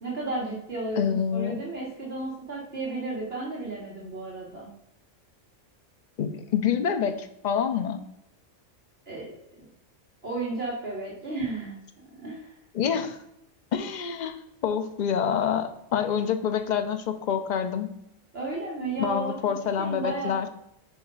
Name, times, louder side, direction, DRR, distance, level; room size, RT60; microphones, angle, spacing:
voice 1, 0.0-1.0 1.3-4.7 9.1-9.3 9.6-9.7 10.2-11.8 12.2-12.6 18.3-19.3 19.8-20.4, right 2 dB, 50° right, -4 dB, 1.6 m, -33 dB
voice 2, 1.0-1.6 6.2-8.0 12.7-13.2 13.7-14.4 14.6-17.9 19.0-20.5, left 7 dB, 45° left, 7 dB, 0.6 m, -27 dB
4.9 x 4.8 x 5.4 m, 0.81 s
omnidirectional pair, 1.3 m